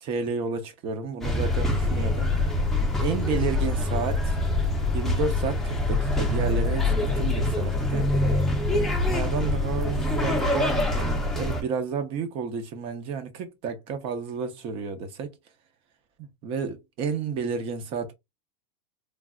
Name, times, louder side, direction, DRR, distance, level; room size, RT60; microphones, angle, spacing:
voice 1, 0.0-2.3 3.0-4.4 4.9-8.1 8.7-15.3 16.2-18.1, right 5 dB, 35° right, 0.8 m, -31 dB
sound 1, 1.2-11.6, left 2 dB, ahead, 0.7 m, -25 dB
3.3 x 2.4 x 2.4 m
supercardioid pair, 155°, 15 cm